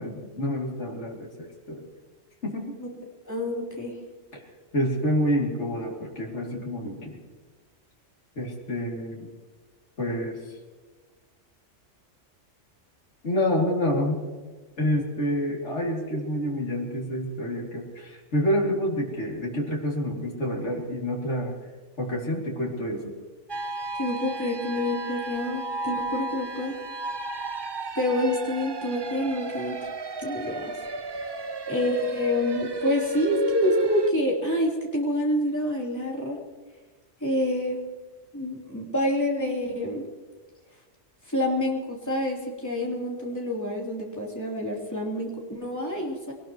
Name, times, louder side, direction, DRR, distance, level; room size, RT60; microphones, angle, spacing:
voice 1, 0.0-1.9 2.4-2.7 4.3-4.4 4.7-7.2 8.3-9.3 10.0-10.4 13.2-14.2 14.8-21.5 22.0-23.1, equal, 70° left, -2 dB, 3.2 m, -28 dB
voice 2, 3.2-3.9 16.1-16.2 24.0-26.8 27.9-29.9 30.2-30.7 31.7-36.4 37.2-37.8 38.3-40.0 41.3-46.3, left 1 dB, 15° left, -3 dB, 3.4 m, -27 dB
sound 1, 23.5-34.1, right 2 dB, 30° right, 0.5 m, -32 dB
22.5 x 19.5 x 3.1 m, 1.3 s
omnidirectional pair, 1.2 m